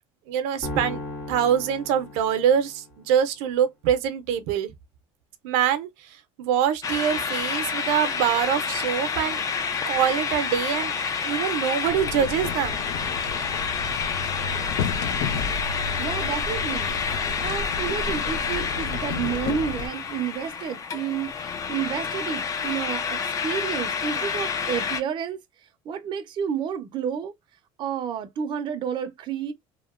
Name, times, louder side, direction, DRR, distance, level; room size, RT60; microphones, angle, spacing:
voice 1, 0.3-1.0 1.3-4.7 5.4-5.9 6.4-9.4 9.9-10.9 11.2-12.8, right 9 dB, 85° right, 0.5 m, -24 dB
sound 1, 0.6-3.0, left 2 dB, 65° left, 1.5 m, -36 dB
sound 2, 6.8-25.0, left 6 dB, 25° left, 0.4 m, -29 dB
sound 3, 11.9-19.9, left 5 dB, 90° left, 0.5 m, -32 dB
voice 2, 16.0-16.9 17.4-25.4 25.9-27.3 27.8-29.5, right 8 dB, 40° right, 0.5 m, -30 dB
2.8 x 2.1 x 2.4 m
cardioid pair, 140°, 12 cm